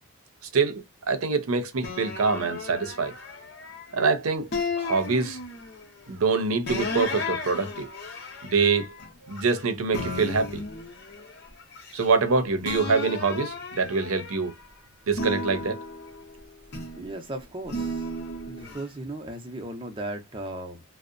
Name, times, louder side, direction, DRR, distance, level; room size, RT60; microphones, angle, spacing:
voice 1, 0.5-3.2 3.9-4.5 4.8-5.4 6.1-7.9 8.4-8.9 9.3-10.6 11.9-14.5 15.1-15.8, right 4 dB, 80° right, 0.6 m, -25 dB
sound 1, 1.8-4.0 4.5-5.9 6.7-9.6 9.9-12.3 12.6-14.6 15.1-17.1 17.7-18.8, left 2 dB, 50° left, 0.7 m, -34 dB
voice 2, 16.9-18.1 18.5-20.8, right 1 dB, 25° right, 0.6 m, -36 dB
2.6 x 2.1 x 2.4 m
head